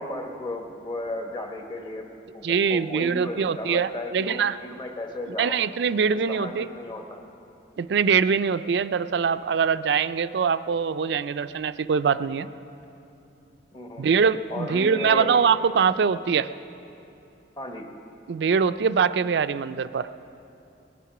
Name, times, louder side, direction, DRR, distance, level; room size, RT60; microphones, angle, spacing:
voice 1, 0.0-5.6 6.1-7.2 13.7-14.1 14.5-15.3 17.6-17.9, left 2 dB, 25° left, 3 dB, 1.2 m, -35 dB
voice 2, 2.4-4.6 5.4-6.7 7.8-12.5 14.0-16.5 18.3-20.1, right 6 dB, 65° right, 13 dB, 0.4 m, -23 dB
20.0 x 10.0 x 6.0 m, 2.8 s
head